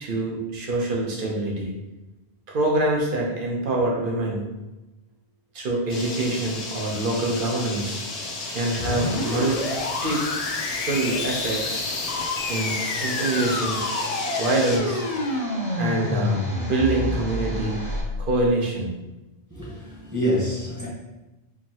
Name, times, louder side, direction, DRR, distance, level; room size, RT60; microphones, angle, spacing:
voice 1, 0.0-1.7 2.5-4.5 5.5-8.0 8.5-9.6 10.0-10.2 10.8-11.8 12.5-13.8 14.4-15.0 15.8-17.9 18.2-18.9, right 2 dB, 55° right, -1 dB, 1.0 m, -25 dB
sound 1, 5.9-14.8, left 2 dB, 85° left, 1.1 m, -33 dB
sound 2, 8.8-18.5, left 3 dB, 60° left, 0.4 m, -29 dB
Domestic sounds home sounds, 12.3-18.0, right 1 dB, 10° left, 0.6 m, -39 dB
voice 2, 19.5-20.9, equal, 15° right, -8 dB, 1.2 m, -26 dB
4.7 x 2.9 x 3.0 m, 1.0 s
omnidirectional pair, 1.1 m